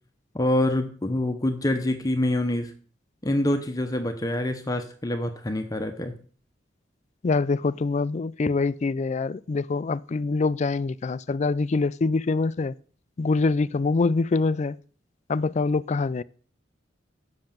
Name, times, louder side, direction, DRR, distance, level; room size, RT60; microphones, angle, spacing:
voice 1, 0.3-2.7 3.2-6.1, left 1 dB, 20° left, 0.8 m, -26 dB
voice 2, 7.2-12.7 13.2-14.8 15.3-16.2, left 3 dB, 40° left, 0.4 m, -24 dB
7.8 x 6.4 x 7.2 m
head